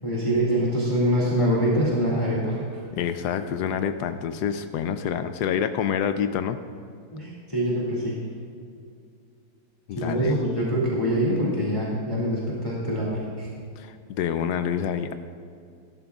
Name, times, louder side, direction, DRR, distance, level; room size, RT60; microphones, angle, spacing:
voice 1, 0.0-2.8 7.1-8.2 9.9-13.5, equal, 15° left, -6 dB, 2.0 m, -24 dB
voice 2, 2.9-6.6 9.9-10.3 13.8-15.1, left 8 dB, 85° left, 9 dB, 0.9 m, -27 dB
17.5 x 12.5 x 2.4 m, 2.3 s
omnidirectional pair, 2.3 m